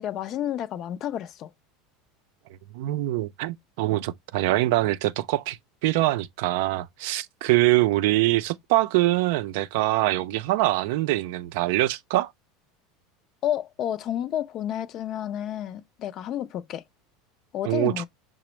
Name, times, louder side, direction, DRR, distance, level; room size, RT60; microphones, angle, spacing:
voice 1, 0.0-1.5 13.4-16.8 17.5-18.0, left 11 dB, 45° left, 0.4 m, -30 dB
voice 2, 2.7-12.3 17.6-18.0, right 17 dB, 70° right, 0.4 m, -24 dB
5.9 x 2.0 x 3.0 m
supercardioid pair, 120°, 0 cm